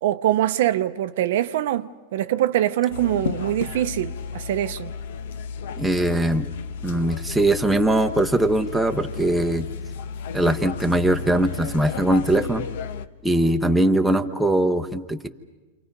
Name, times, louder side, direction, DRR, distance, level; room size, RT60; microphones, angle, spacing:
voice 1, 0.0-4.9, right 13 dB, 60° right, 0.8 m, -23 dB
sound 1, 2.9-13.1, left 6 dB, 70° left, 1.0 m, -33 dB
voice 2, 5.8-6.5 6.8-9.7 10.3-12.6 13.2-15.3, right 1 dB, ahead, 0.9 m, -21 dB
28.5 x 27.0 x 5.4 m
supercardioid pair, 155°, 0 cm